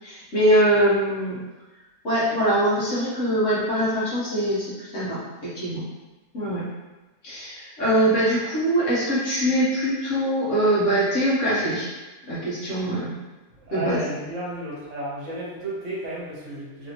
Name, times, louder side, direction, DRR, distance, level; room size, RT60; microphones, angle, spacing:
voice 1, 0.0-1.4 2.0-5.8 6.3-6.6 7.2-11.9 12.3-13.2 13.7-14.0, right 1 dB, 60° left, -9 dB, 1.4 m, -23 dB
voice 2, 13.6-16.9, right 1 dB, 60° right, -6 dB, 1.2 m, -33 dB
3.2 x 2.7 x 2.9 m, 1.1 s
omnidirectional pair, 1.5 m